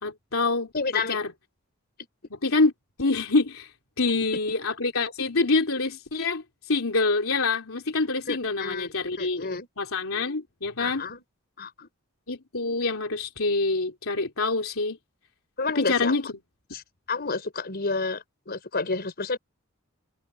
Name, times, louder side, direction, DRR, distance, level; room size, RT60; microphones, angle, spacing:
voice 1, 0.0-0.7 1.1-1.3 2.4-2.7 3.0-3.7 4.0-9.5 9.8-11.0 12.3-15.0 15.8-16.2, left 3 dB, 75° left, 3.5 m, -26 dB
voice 2, 0.7-1.2 8.3-8.9 9.2-9.7 10.8-11.2 11.6-11.9 15.6-16.2 16.7-16.8 17.1-19.4, left 4 dB, 50° left, 4.4 m, -30 dB
head